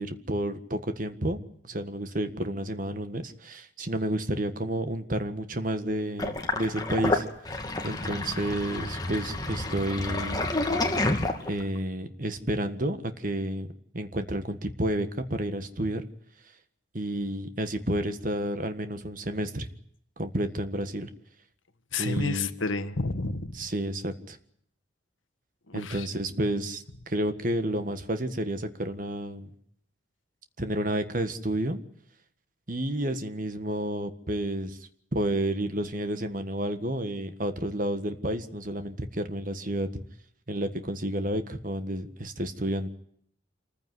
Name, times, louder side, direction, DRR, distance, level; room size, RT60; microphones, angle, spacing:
voice 1, 0.0-7.3 7.8-10.5 11.5-13.7 13.9-16.0 16.9-19.7 20.2-21.1 22.0-22.5 23.5-24.4 25.7-29.5 30.6-31.8 32.7-34.8 35.1-39.9 40.5-42.9, right 1 dB, 40° right, 9 dB, 1.7 m, -30 dB
Sink (filling or washing), 6.2-11.8, left 2 dB, 20° left, 2.3 m, -29 dB
voice 2, 21.9-23.6 25.7-26.1, left 3 dB, 80° left, 10 dB, 1.6 m, -30 dB
26.5 x 15.0 x 9.6 m, 0.68 s
head